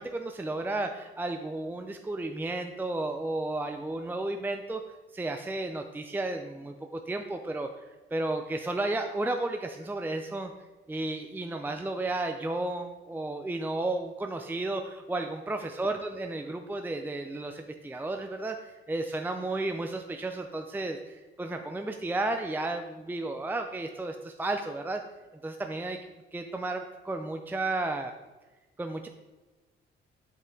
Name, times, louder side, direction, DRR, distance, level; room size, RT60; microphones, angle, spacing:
voice 1, 0.0-4.8 5.1-7.7 8.1-10.5 10.9-25.0 25.4-26.0 26.3-28.1 28.8-29.1, right 2 dB, 10° right, 5 dB, 0.5 m, -33 dB
7.6 x 5.5 x 3.8 m, 1.2 s
cardioid pair, 90°, 20 cm